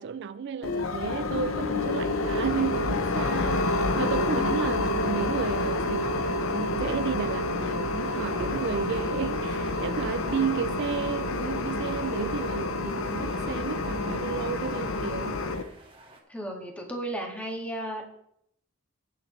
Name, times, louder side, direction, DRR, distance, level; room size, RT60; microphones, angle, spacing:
voice 1, 0.0-15.5, right 7 dB, 55° right, 0.3 m, -32 dB
sound 1, 0.6-15.6, left 2 dB, 70° left, 0.8 m, -28 dB
sound 2, 8.0-16.2, right 2 dB, 25° right, 1.8 m, -53 dB
voice 2, 10.2-10.6 16.3-18.1, right 1 dB, 5° left, 1.9 m, -35 dB
18.5 x 7.0 x 3.2 m
head